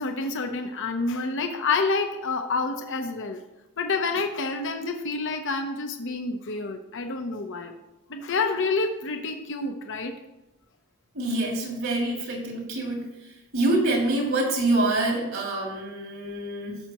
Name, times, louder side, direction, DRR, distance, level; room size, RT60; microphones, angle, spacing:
voice 1, 0.0-3.4 3.8-7.7 8.1-10.1, left 3 dB, 55° left, 5 dB, 0.9 m, -28 dB
voice 2, 11.1-13.1 13.5-16.8, right 2 dB, 60° right, 0 dB, 2.6 m, -26 dB
16.5 x 6.6 x 3.0 m, 0.97 s
head